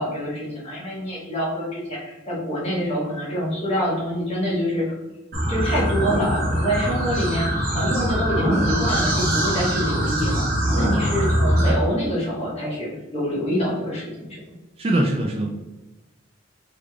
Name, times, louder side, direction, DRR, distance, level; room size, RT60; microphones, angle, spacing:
voice 1, 0.0-5.0 5.5-10.4 10.7-14.4, equal, 30° left, -6 dB, 1.2 m, -26 dB
sound 1, 5.3-11.7, right 1 dB, 45° right, 1.2 m, -22 dB
voice 2, 14.8-15.5, right 1 dB, 30° right, 0 dB, 0.3 m, -21 dB
3.5 x 3.2 x 2.3 m, 1.1 s
head